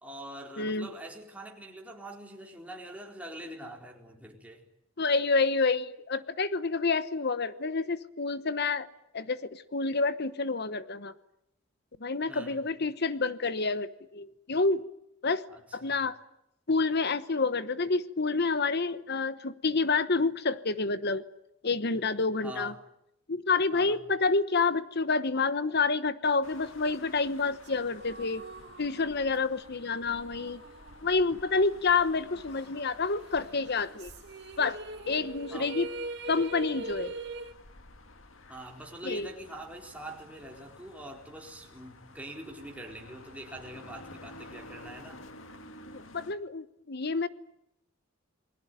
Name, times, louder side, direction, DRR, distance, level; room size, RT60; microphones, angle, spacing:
voice 1, 0.0-4.6 12.3-12.6 15.5-16.0 22.4-22.8 23.7-24.0 35.5-35.7 38.5-45.2, right 1 dB, 5° right, 4.2 m, -44 dB
voice 2, 0.6-0.9 5.0-8.9 9.1-11.1 12.0-14.8 15.2-15.4 15.7-16.1 16.7-21.2 21.6-22.7 23.3-28.4 28.8-30.6 31.0-34.1 34.6-34.8 35.1-35.9 36.3-37.1 39.0-39.3 45.8-47.3, left 4 dB, 50° left, 1.1 m, -28 dB
sound 1, 26.4-46.3, left 2 dB, 70° left, 2.0 m, -52 dB
sound 2, 27.4-32.0 32.3-32.4 33.7-37.5, right 3 dB, 55° right, 2.5 m, -42 dB
28.0 x 20.5 x 9.3 m
head